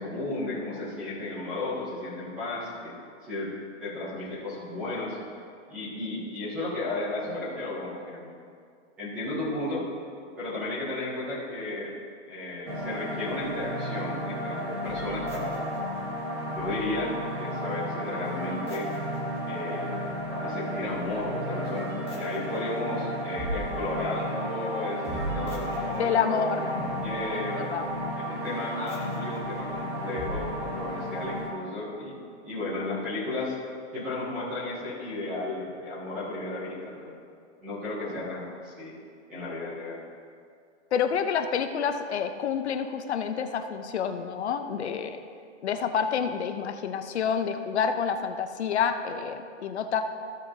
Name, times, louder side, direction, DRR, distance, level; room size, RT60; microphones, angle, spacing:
voice 1, 0.0-2.9 3.2-3.5 3.8-5.2 5.7-8.3 9.0-9.9 10.4-11.9 12.2-15.7 16.5-18.9 19.4-27.7 28.2-33.5 33.9-37.1 37.6-38.9 39.3-40.0, left 2 dB, 5° right, -11 dB, 0.5 m, -34 dB
sound 1, 12.7-31.5, equal, 20° right, 1.0 m, -33 dB
voice 2, 26.0-26.7 27.2-27.4 27.7-27.8 40.9-45.2 45.6-50.0, left 7 dB, 65° left, 7 dB, 0.8 m, -28 dB
14.5 x 7.4 x 2.8 m, 2.3 s
hypercardioid pair, 175°, 36 cm